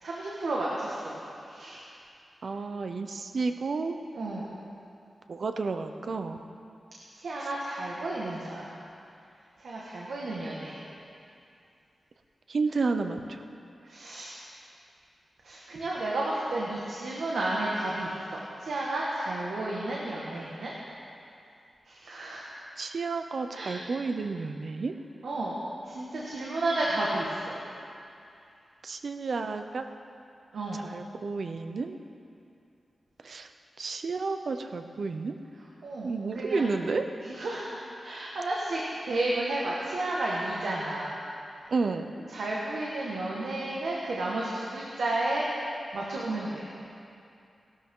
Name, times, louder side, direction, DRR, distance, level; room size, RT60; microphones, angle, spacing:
voice 1, 0.0-1.2 1.5-1.8 4.1-4.5 7.1-8.7 9.6-10.8 13.8-14.3 15.4-20.8 21.9-22.4 23.5-23.8 25.2-27.6 30.5-30.8 35.8-36.7 37.2-41.2 42.3-45.5 45.9-46.6, right 2 dB, 90° right, -5 dB, 1.7 m, -32 dB
voice 2, 2.4-4.0 5.3-6.4 12.5-13.4 22.8-24.9 28.8-29.8 30.7-32.0 33.2-33.5 33.8-35.3 36.0-37.0 41.7-42.1, right 4 dB, 60° right, 7 dB, 0.7 m, -31 dB
17.5 x 12.5 x 3.8 m, 2.6 s
wide cardioid pair, 125°, 0 cm